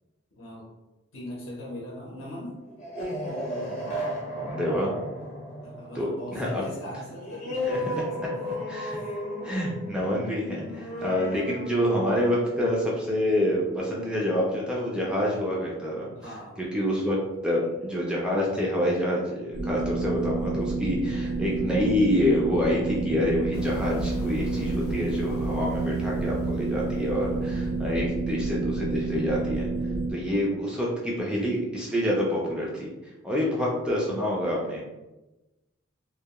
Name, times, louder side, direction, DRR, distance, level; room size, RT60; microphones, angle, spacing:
voice 1, 0.4-0.7 1.1-2.6 5.6-8.6 8.9-9.7 10.9-11.2 16.1-17.3, left 1 dB, 70° left, -5 dB, 0.7 m, -41 dB
sound 1, 2.7-13.9, equal, 35° left, 0.7 m, -35 dB
voice 2, 4.4-4.9 6.0-6.6 7.6-7.8 8.7-9.0 9.4-16.1 16.7-17.2 17.4-29.7 30.1-32.9 33.2-34.8, left 1 dB, 5° right, -4 dB, 0.3 m, -27 dB
sound 2, 19.5-30.1, right 3 dB, 90° right, 0.5 m, -29 dB
sound 3, 23.5-28.3, left 1 dB, 90° left, 0.3 m, -40 dB
2.2 x 2.1 x 2.8 m, 1.0 s
head